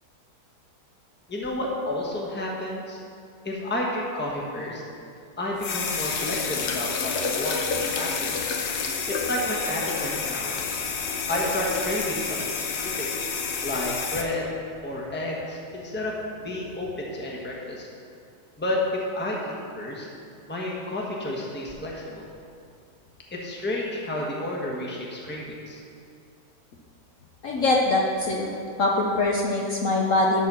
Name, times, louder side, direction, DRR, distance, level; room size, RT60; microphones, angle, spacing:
voice 1, 1.3-3.0 3.4-4.8 5.4-8.5 9.1-10.8 11.3-13.1 13.6-14.5 14.8-16.1 16.4-17.9 18.6-20.1 20.5-22.3 23.3-25.8, left 1 dB, 5° left, -3 dB, 1.0 m, -31 dB
sound 1, 5.6-14.2, left 5 dB, 85° left, 1.5 m, -29 dB
voice 2, 27.4-28.5 28.8-30.5, left 2 dB, 55° left, -3 dB, 1.0 m, -23 dB
12.5 x 4.2 x 6.1 m, 2.4 s
omnidirectional pair, 1.9 m